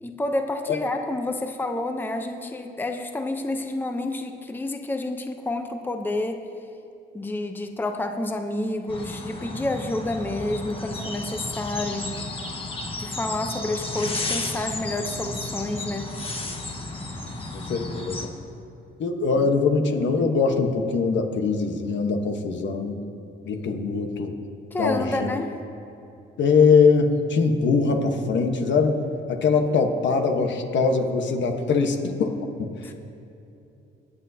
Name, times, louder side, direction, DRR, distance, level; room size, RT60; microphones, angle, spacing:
voice 1, 0.0-6.4 7.1-12.2 13.0-16.1 19.4-19.5 24.7-25.5 32.8-32.9, left 2 dB, 10° left, 5 dB, 0.7 m, -29 dB
sound 1, 8.9-18.3, left 2 dB, 25° left, 1.4 m, -33 dB
voice 2, 17.5-18.3 19.0-23.0 23.4-24.3 24.8-25.3 26.4-29.0 29.3-32.7, left 4 dB, 65° left, 5 dB, 1.2 m, -22 dB
24.0 x 8.3 x 2.8 m, 2.8 s
cardioid pair, 90°, 20 cm